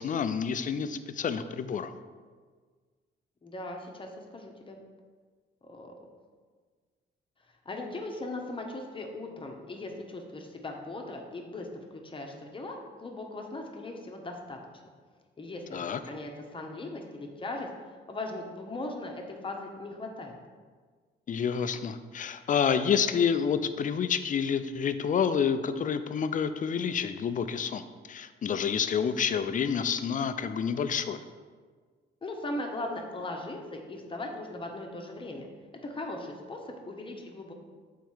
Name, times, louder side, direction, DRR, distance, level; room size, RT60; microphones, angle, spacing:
voice 1, 0.0-1.9 15.7-16.0 21.3-31.2, left 7 dB, 40° left, 11 dB, 0.5 m, -28 dB
voice 2, 3.4-4.8 5.6-5.9 7.6-14.6 15.4-17.7 18.1-20.4 32.2-35.5 35.8-37.5, left 2 dB, 25° left, 2 dB, 1.1 m, -39 dB
7.0 x 4.6 x 4.6 m, 1.5 s
cardioid pair, 90°, 20 cm